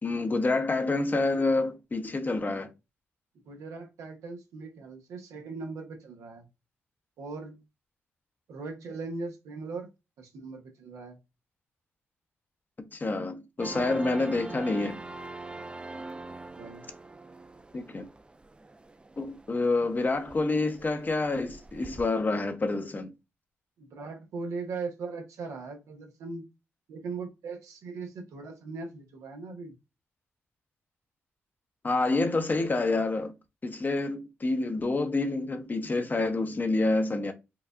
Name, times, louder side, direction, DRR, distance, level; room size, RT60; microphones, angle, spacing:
voice 1, 0.0-2.7 12.9-15.0 17.7-18.1 19.2-23.1 31.8-33.3 33.6-37.3, left 2 dB, 35° left, 0.8 m, -28 dB
voice 2, 3.5-6.5 7.2-7.6 8.5-9.9 10.2-11.2 14.0-14.2 16.6-16.9 23.8-26.4 26.9-29.7, right 4 dB, 85° right, 1.0 m, -39 dB
sound 1, 13.6-22.1, right 3 dB, 20° right, 0.4 m, -44 dB
4.7 x 2.3 x 2.4 m
supercardioid pair, 55°, 5 cm